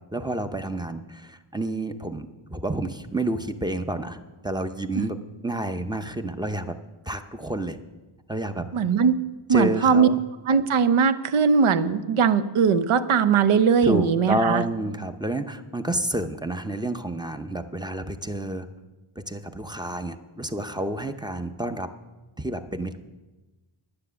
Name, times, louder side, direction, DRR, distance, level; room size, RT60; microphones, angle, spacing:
voice 1, 0.1-5.2 5.4-6.8 7.1-7.8 8.3-8.7 9.5-10.2 13.8-18.7 19.2-21.9 22.4-23.0, right 1 dB, 10° right, 8 dB, 0.5 m, -29 dB
voice 2, 8.7-9.2 9.5-10.1 10.5-14.6, right 6 dB, 85° right, 12 dB, 0.8 m, -20 dB
9.8 x 9.7 x 6.8 m, 1.2 s
wide cardioid pair, 125°, 48 cm